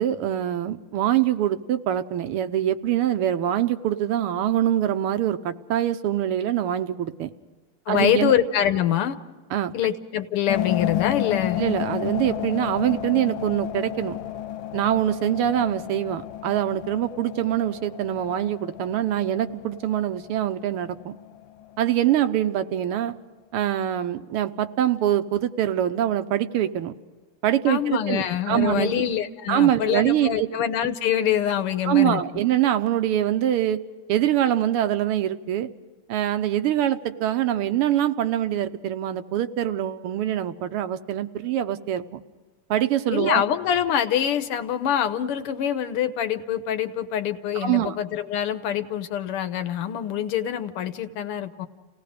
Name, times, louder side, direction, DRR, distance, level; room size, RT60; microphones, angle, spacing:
voice 1, 0.0-7.3 7.9-8.3 9.5-9.7 11.6-14.2 14.7-21.1 21.8-23.1 23.5-26.9 27.4-29.0 29.5-30.5 31.8-33.8 34.1-35.7 36.1-42.0 42.7-43.4 47.6-48.0, right 11 dB, 90° right, 10 dB, 1.8 m, -24 dB
voice 2, 7.9-9.2 9.7-11.6 27.7-32.2 43.1-51.7, left 10 dB, 85° left, 10 dB, 1.9 m, -25 dB
sound 1, 10.5-22.3, left 11 dB, 65° left, 1.4 m, -32 dB
29.5 x 18.0 x 5.1 m, 1.3 s
omnidirectional pair, 2.4 m